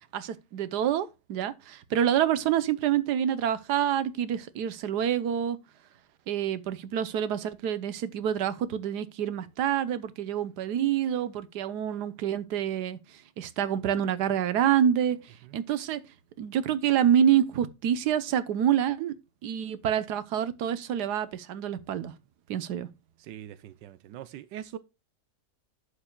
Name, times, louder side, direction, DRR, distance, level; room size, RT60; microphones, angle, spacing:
voice 1, 0.1-5.6 6.3-16.0 16.4-19.1 19.4-22.1 22.5-22.9, right 9 dB, 70° right, 1.5 m, -27 dB
voice 2, 23.2-24.8, right 11 dB, 90° right, 1.4 m, -42 dB
11.5 x 8.9 x 2.3 m
omnidirectional pair, 1.8 m